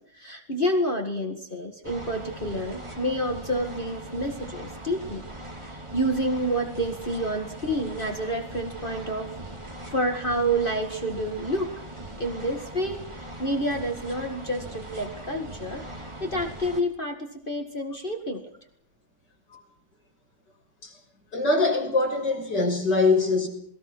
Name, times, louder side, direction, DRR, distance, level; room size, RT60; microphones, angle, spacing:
voice 1, 0.1-5.2 5.6-9.3 9.9-11.7 12.2-18.4, equal, 30° left, 2.2 m, -29 dB
sound 1, 1.8-16.8, right 1 dB, 15° right, 2.5 m, -40 dB
voice 2, 21.3-23.5, left 3 dB, 90° left, 7.0 m, -23 dB
28.0 x 20.5 x 6.2 m
omnidirectional pair, 1.8 m